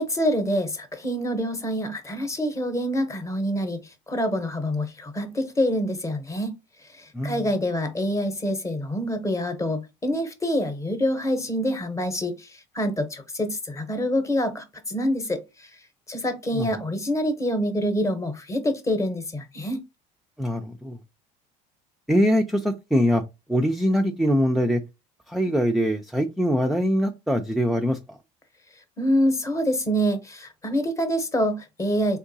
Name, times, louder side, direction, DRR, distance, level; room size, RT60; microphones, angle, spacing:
voice 1, 0.0-6.5 6.9-15.7 16.1-19.8 29.0-32.2, equal, 20° left, 0.8 m, -26 dB
voice 2, 20.4-21.0 22.1-23.2 23.5-24.8 25.3-28.2, equal, ahead, 0.3 m, -23 dB
3.6 x 2.9 x 2.7 m
supercardioid pair, 110°, 16 cm